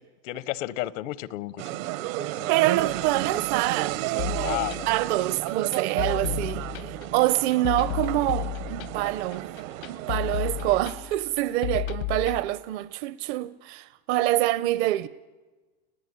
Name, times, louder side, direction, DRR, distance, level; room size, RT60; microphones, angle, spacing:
voice 1, 0.2-1.8 2.2-2.5 4.4-4.9, left 16 dB, 65° left, 0.8 m, -32 dB
sound 1, 1.6-10.8, right 16 dB, 70° right, 1.1 m, -32 dB
voice 2, 2.5-4.6 4.9-9.5 9.9-15.1, right 16 dB, 55° right, 0.8 m, -26 dB
sound 2, 2.7-11.1, right 8 dB, 85° right, 4.3 m, -47 dB
sound 3, 4.2-12.4, left 14 dB, 85° left, 1.4 m, -33 dB
30.0 x 19.5 x 9.8 m
supercardioid pair, 170°, 41 cm